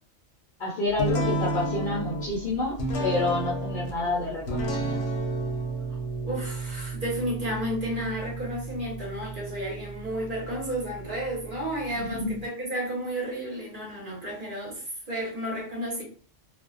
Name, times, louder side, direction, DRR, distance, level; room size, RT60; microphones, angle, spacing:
voice 1, 0.6-5.0 12.0-12.4, left 2 dB, 55° left, -4 dB, 0.6 m, -29 dB
sound 1, 1.0-12.4, right 2 dB, 75° left, 0.9 m, -32 dB
voice 2, 6.2-16.0, equal, 45° right, -3 dB, 1.0 m, -32 dB
2.4 x 2.1 x 2.4 m, 0.41 s
omnidirectional pair, 1.3 m